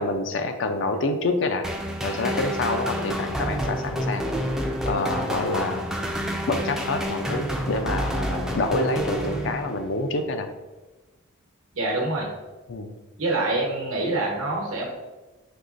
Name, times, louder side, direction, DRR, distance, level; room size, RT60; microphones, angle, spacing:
voice 1, 0.0-1.7 2.0-4.3 4.8-5.9 6.5-10.5 12.7-12.9, left 2 dB, 60° left, 7 dB, 0.4 m, -27 dB
sound 1, 1.6-10.0, equal, ahead, 0.3 m, -29 dB
voice 2, 11.7-12.3 13.2-14.9, right 2 dB, 85° right, -2 dB, 1.0 m, -25 dB
5.3 x 3.1 x 2.5 m, 1.2 s
head